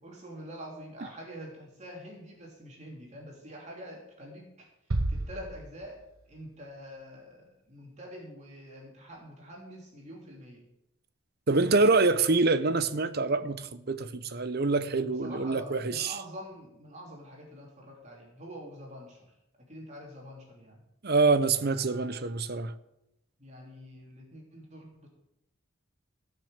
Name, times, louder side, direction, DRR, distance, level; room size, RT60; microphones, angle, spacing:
voice 1, 0.0-4.7 5.1-10.6 14.7-20.8 23.4-25.1, equal, 35° right, 3.0 m, -46 dB
sound 1, 4.9-6.5, right 2 dB, 85° right, 1.0 m, -33 dB
voice 2, 11.5-16.1 21.0-22.7, right 3 dB, 50° right, 0.8 m, -25 dB
16.5 x 6.5 x 6.6 m
head